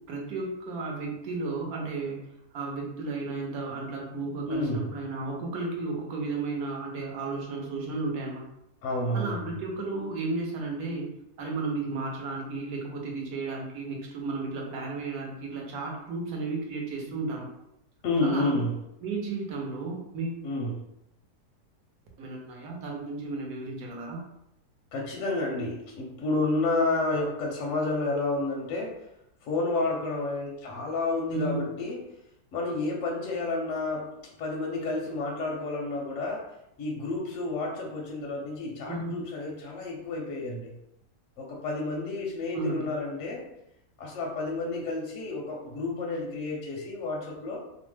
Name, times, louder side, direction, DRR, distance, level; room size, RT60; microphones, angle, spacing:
voice 1, 0.1-2.2 2.5-8.4 9.1-11.1 11.4-17.5 18.2-18.6 19.0-20.4 22.2-24.2 31.3-31.7 38.9-39.2 42.5-42.9, right 3 dB, 70° right, -1 dB, 1.2 m, -33 dB
voice 2, 4.5-4.9 8.8-9.5 18.0-18.7 20.4-20.8 24.9-29.0 29.4-32.0 32.5-34.1 34.4-36.4 36.8-40.7 41.4-43.4 44.0-47.6, left 2 dB, 70° left, -1 dB, 0.8 m, -30 dB
2.8 x 2.1 x 3.1 m, 0.82 s
omnidirectional pair, 1.7 m